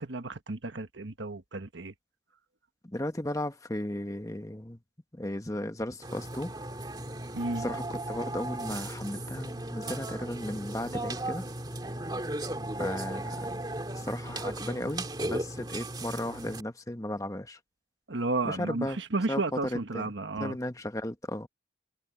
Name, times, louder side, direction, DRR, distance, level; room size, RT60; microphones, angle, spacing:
voice 1, 0.0-1.9 7.3-7.7 18.1-20.6, right 2 dB, 70° right, 1.4 m, -32 dB
voice 2, 2.8-4.8 5.1-6.5 7.6-11.4 12.8-13.5 13.9-17.6 18.4-19.0 19.3-20.1 20.4-21.5, left 1 dB, 15° left, 1.1 m, -35 dB
Burping eructation, 6.0-16.6, right 1 dB, 20° right, 2.3 m, -36 dB
head